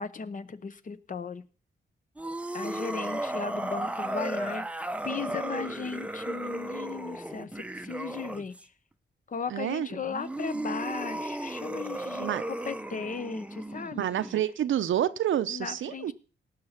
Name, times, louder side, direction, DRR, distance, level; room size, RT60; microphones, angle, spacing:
voice 1, 0.0-1.4 2.5-4.7 5.0-8.5 9.3-14.1 15.5-16.1, left 5 dB, 40° left, 1.0 m, -36 dB
sound 1, 2.2-8.6 10.0-14.4, right 1 dB, 5° right, 0.7 m, -35 dB
voice 2, 9.5-10.0 12.2-12.4 14.0-16.1, right 11 dB, 80° right, 0.8 m, -28 dB
18.0 x 6.7 x 5.9 m
cardioid pair, 105°, 20 cm